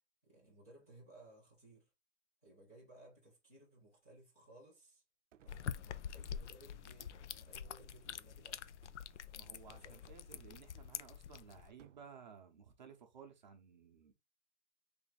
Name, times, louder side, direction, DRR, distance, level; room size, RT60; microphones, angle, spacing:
voice 1, 0.2-1.9 2.4-5.0 5.4-8.7 9.3-10.6, right 1 dB, 10° left, 0.5 m, -61 dB
sound 1, 5.3-6.2 7.0-8.0 8.8-9.3 10.3-10.7 11.8-12.1, right 10 dB, 85° right, 0.6 m, -66 dB
sound 2, 5.5-11.7, left 8 dB, 70° left, 0.5 m, -46 dB
voice 2, 9.3-14.1, right 7 dB, 40° right, 0.7 m, -57 dB
3.4 x 2.5 x 4.0 m
hypercardioid pair, 180°, 37 cm